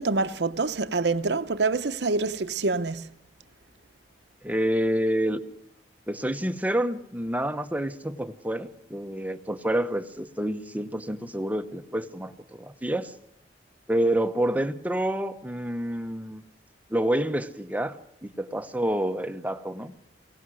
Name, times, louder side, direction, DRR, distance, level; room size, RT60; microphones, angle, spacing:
voice 1, 0.0-3.0, right 3 dB, 75° right, 0.9 m, -26 dB
voice 2, 4.4-5.4 6.1-13.1 13.9-16.4 16.9-20.0, right 1 dB, 10° right, 0.9 m, -28 dB
23.5 x 17.5 x 6.4 m
head